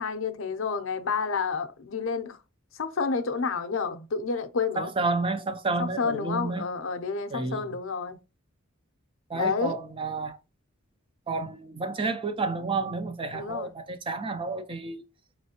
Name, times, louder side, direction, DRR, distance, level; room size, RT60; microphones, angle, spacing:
voice 1, 0.0-2.4 2.7-4.9 5.8-8.2 9.3-9.8 13.3-13.7, left 5 dB, 65° left, 0.6 m, -30 dB
voice 2, 4.8-6.6 7.3-7.7 9.3-10.4 11.3-15.0, right 3 dB, 25° right, 0.4 m, -30 dB
4.3 x 3.1 x 2.8 m
head